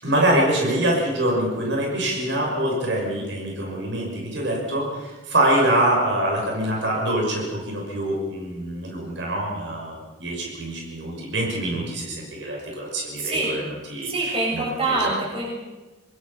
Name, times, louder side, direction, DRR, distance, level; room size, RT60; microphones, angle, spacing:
voice 1, 0.0-13.6 13.9-15.1, right 1 dB, 75° right, -1 dB, 6.4 m, -25 dB
voice 2, 13.2-13.6 14.0-15.5, right 2 dB, 30° right, -3 dB, 7.6 m, -25 dB
28.0 x 20.5 x 5.7 m, 1.2 s
head